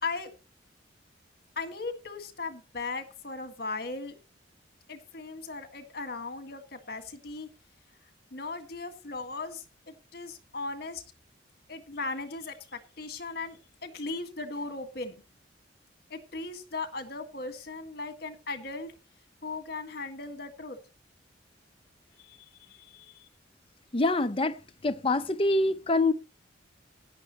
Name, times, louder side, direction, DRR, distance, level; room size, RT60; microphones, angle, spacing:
voice 1, 0.0-0.3 1.6-4.1 4.9-7.5 8.3-11.0 11.7-15.2 16.1-18.9 19.4-20.8 22.2-23.3, left 3 dB, 55° left, 1.8 m, -38 dB
voice 2, 23.9-24.6 24.8-26.1, left 2 dB, 30° left, 0.7 m, -25 dB
16.0 x 10.5 x 3.0 m
head